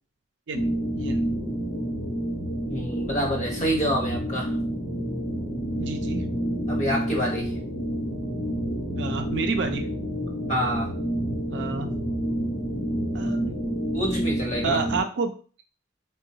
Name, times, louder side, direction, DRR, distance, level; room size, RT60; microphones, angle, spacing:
sound 1, 0.5-15.0, equal, 75° left, 1.0 m, -29 dB
voice 1, 0.5-1.2 5.8-6.2 9.0-9.8 11.5-12.1 13.1-13.6 14.6-15.3, right 4 dB, 60° right, 5 dB, 0.4 m, -30 dB
voice 2, 2.7-4.6 6.7-7.5 10.5-10.9 13.9-14.8, equal, 35° left, -1 dB, 0.9 m, -27 dB
3.9 x 2.2 x 2.7 m, 0.39 s
head